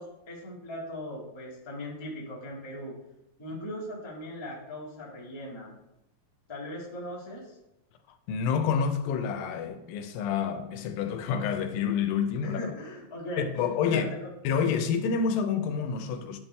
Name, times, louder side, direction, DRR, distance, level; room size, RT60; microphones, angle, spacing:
voice 1, 0.0-2.9 3.4-5.7 6.5-7.6 12.4-14.1, left 1 dB, 20° left, 0.7 m, -39 dB
voice 2, 8.3-12.6 13.6-14.0 14.5-16.4, left 6 dB, 85° left, 2.4 m, -28 dB
11.0 x 4.3 x 3.3 m
omnidirectional pair, 4.0 m